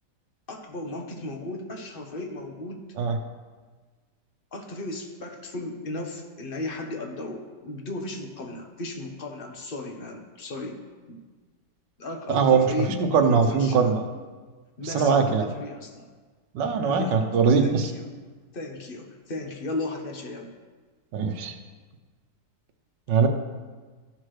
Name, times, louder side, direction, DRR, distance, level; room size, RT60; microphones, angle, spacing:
voice 1, 0.5-2.9 4.5-10.8 11.1-11.2 12.0-13.9 14.8-16.1 16.8-17.2 17.6-18.1 18.5-20.5, left 2 dB, 40° left, 3 dB, 0.9 m, -35 dB
voice 2, 12.3-12.7 13.0-14.0 14.9-15.5 16.5-17.8 21.1-21.5 23.1-23.3, right 5 dB, 85° right, 6 dB, 1.4 m, -21 dB
14.0 x 6.0 x 3.2 m, 1.4 s
omnidirectional pair, 1.9 m